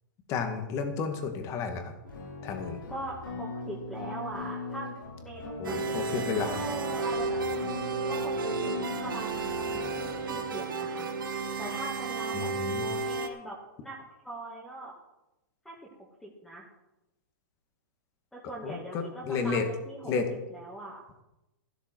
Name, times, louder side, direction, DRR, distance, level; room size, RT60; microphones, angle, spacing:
voice 1, 0.3-1.9 2.4-2.8 5.6-6.6 12.3-12.9 18.6-19.7 20.1-20.3, left 5 dB, 25° left, 6 dB, 2.0 m, -32 dB
sound 1, 2.0-10.4, left 3 dB, 85° left, 5.1 m, -40 dB
voice 2, 2.9-7.6 8.1-11.1 11.6-14.9 15.6-15.8 16.2-16.7 18.3-20.1 20.5-21.0, right 1 dB, 5° left, -2 dB, 2.2 m, -41 dB
sound 2, 5.6-13.3, right 4 dB, 90° right, 2.0 m, -32 dB
13.5 x 12.0 x 4.7 m, 0.94 s
hypercardioid pair, 155°, 11 cm